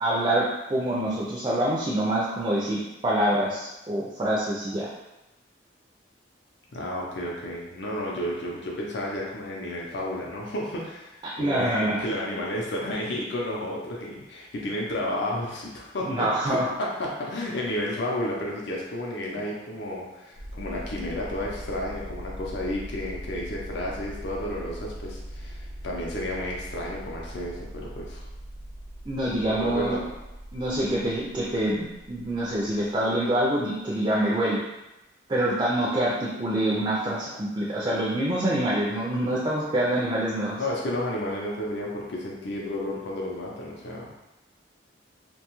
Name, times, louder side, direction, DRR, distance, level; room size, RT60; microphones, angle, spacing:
voice 1, 0.0-4.9 11.2-12.0 16.0-16.7 29.1-30.0 30.5-34.6 35.3-40.6, right 1 dB, 25° right, -5 dB, 0.3 m, -26 dB
voice 2, 6.7-28.3 29.4-30.1 30.9-31.0 40.6-44.1, left 1 dB, 65° left, -3 dB, 0.5 m, -32 dB
sound 1, 20.3-33.0, equal, 90° right, 0.7 m, -40 dB
2.6 x 2.2 x 2.9 m, 0.97 s
head